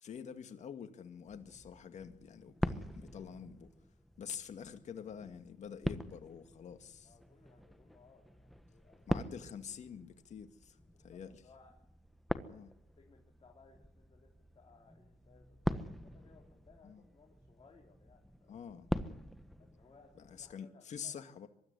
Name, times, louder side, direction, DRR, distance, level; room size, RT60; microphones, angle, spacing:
voice 1, 0.0-3.7 4.2-7.1 9.1-11.4 12.5-12.7 16.8-17.0 18.5-18.9 20.3-21.5, left 7 dB, 60° left, 2.1 m, -47 dB
sound 1, 1.3-20.5, equal, ahead, 1.4 m, -43 dB
voice 2, 7.0-9.2 10.9-11.8 12.3-14.3 14.5-18.7 19.6-21.2, left 4 dB, 40° left, 4.1 m, -64 dB
24.0 x 13.0 x 9.8 m
cardioid pair, 80°, 14 cm